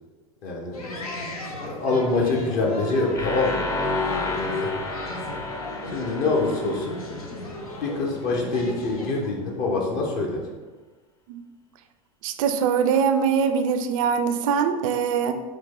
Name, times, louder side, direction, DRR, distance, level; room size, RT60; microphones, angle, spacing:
voice 1, 0.4-0.8 1.6-3.7 4.2-4.8 5.9-7.0 7.8-10.4, left 3 dB, 55° left, 0 dB, 1.1 m, -25 dB
sound 1, 0.7-9.3, left 1 dB, 90° left, 0.6 m, -36 dB
sound 2, 3.2-8.0, left 3 dB, 20° left, 0.6 m, -31 dB
voice 2, 12.2-15.4, right 6 dB, 65° right, 8 dB, 0.4 m, -22 dB
4.9 x 2.3 x 3.8 m, 1.3 s
hypercardioid pair, 85°, 18 cm